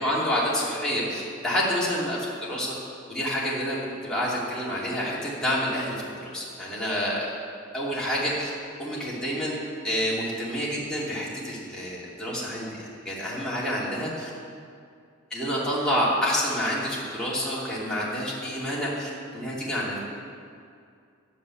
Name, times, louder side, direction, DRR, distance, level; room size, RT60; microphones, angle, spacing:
voice 1, 0.0-2.7 3.1-3.8 4.0-7.3 7.7-8.5 8.8-9.6 9.8-14.3 15.3-20.0, equal, 5° left, -8 dB, 2.9 m, -28 dB
10.5 x 9.6 x 8.5 m, 2.3 s
head